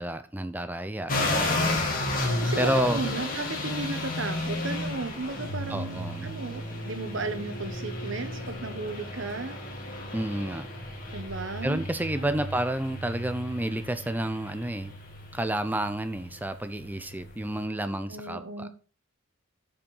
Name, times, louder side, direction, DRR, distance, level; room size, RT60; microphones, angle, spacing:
voice 1, 0.0-1.8 2.6-3.0 5.7-6.3 10.1-10.7 11.6-14.9 15.3-18.7, right 1 dB, 10° right, 0.6 m, -30 dB
sound 1, 1.1-17.6, left 2 dB, 40° left, 2.0 m, -33 dB
voice 2, 2.4-9.6 11.1-11.8 12.2-12.5 18.1-18.7, right 3 dB, 65° right, 1.2 m, -35 dB
sound 2, 7.0-13.6, right 1 dB, 15° left, 1.7 m, -44 dB
7.1 x 5.3 x 5.5 m
head